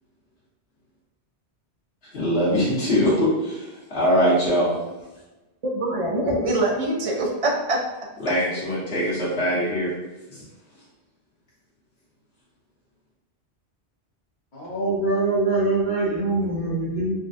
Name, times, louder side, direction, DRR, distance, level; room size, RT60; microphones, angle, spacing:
voice 1, 2.1-4.7 8.2-9.9 10.3-10.4, equal, 70° left, -8 dB, 1.5 m, -22 dB
voice 2, 5.6-7.8, right 1 dB, 45° right, -2 dB, 0.5 m, -24 dB
voice 3, 14.5-17.1, right 2 dB, 45° left, -10 dB, 0.9 m, -23 dB
3.9 x 2.2 x 2.5 m, 1.0 s
omnidirectional pair, 1.1 m